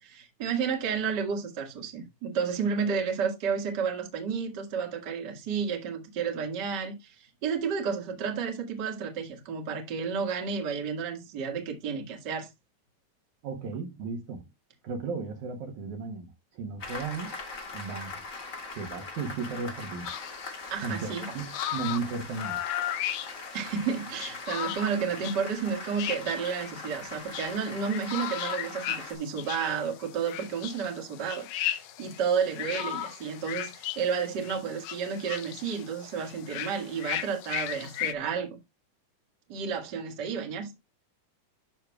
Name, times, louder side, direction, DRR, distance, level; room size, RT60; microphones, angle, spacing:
voice 1, 0.0-12.5 20.7-21.3 23.5-38.6 39.5-40.7, right 6 dB, 40° right, 1.9 m, -31 dB
voice 2, 13.4-14.5 14.8-17.3 17.7-18.2 18.8-20.1 20.8-22.6, right 4 dB, 65° right, 2.3 m, -35 dB
Applause, 16.8-29.1, left 3 dB, 30° left, 1.8 m, -41 dB
sound 1, 20.0-38.1, left 12 dB, 75° left, 2.4 m, -37 dB
12.0 x 6.2 x 2.3 m
omnidirectional pair, 3.9 m